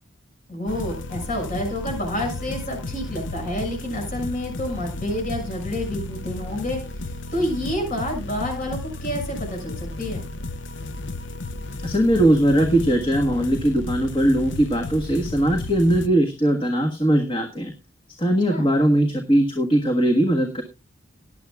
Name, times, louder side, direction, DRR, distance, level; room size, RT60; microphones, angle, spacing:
voice 1, 0.5-6.8 7.3-10.3 18.5-18.7, left 1 dB, 40° left, 1 dB, 6.8 m, -29 dB
sound 1, 0.7-16.1, left 2 dB, 60° left, 0.7 m, -33 dB
voice 2, 11.8-17.7 18.2-20.6, right 1 dB, 25° left, 4 dB, 1.5 m, -20 dB
19.0 x 10.5 x 2.3 m, 0.27 s
head